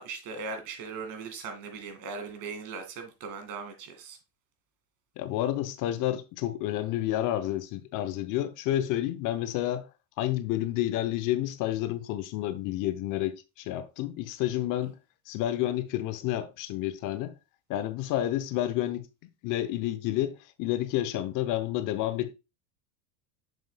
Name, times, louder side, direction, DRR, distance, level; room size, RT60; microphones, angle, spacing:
voice 1, 0.0-4.2, right 4 dB, 55° right, 2.3 m, -39 dB
voice 2, 5.2-9.9 10.2-15.0 15.3-17.4 17.7-19.1 19.4-20.3 20.6-22.3, left 13 dB, 55° left, 0.8 m, -30 dB
7.2 x 6.1 x 2.2 m
supercardioid pair, 105°, 38 cm